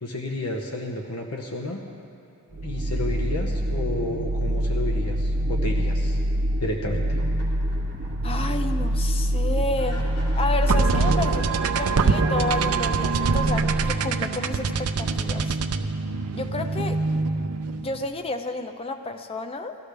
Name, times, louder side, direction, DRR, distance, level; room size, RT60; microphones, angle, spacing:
voice 1, 0.0-1.8 2.5-6.2 6.6-7.0, left 1 dB, 85° left, 1 dB, 0.9 m, -31 dB
sound 1, 2.5-12.2, equal, 35° right, 0.4 m, -25 dB
sound 2, 7.2-8.4 8.8-8.9 9.7-14.0, equal, 60° left, 2.8 m, -43 dB
voice 2, 8.2-10.1 10.4-11.5 11.7-15.6 16.3-17.0 17.8-19.8, left 2 dB, 25° left, 7 dB, 0.6 m, -31 dB
sound 3, 10.7-18.0, right 4 dB, 90° right, 0.5 m, -24 dB
17.5 x 13.0 x 3.4 m, 2.6 s
head